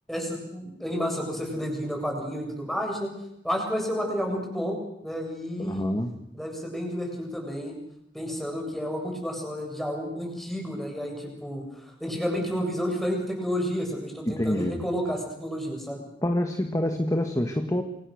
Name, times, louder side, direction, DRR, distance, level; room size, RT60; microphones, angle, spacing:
voice 1, 0.1-3.1 3.4-5.9 6.3-7.8 8.1-16.0, equal, ahead, 1 dB, 7.3 m, -31 dB
voice 2, 5.6-6.1 14.3-14.8 16.2-17.8, left 1 dB, 20° left, 5 dB, 1.7 m, -26 dB
28.5 x 24.5 x 6.6 m, 0.79 s
head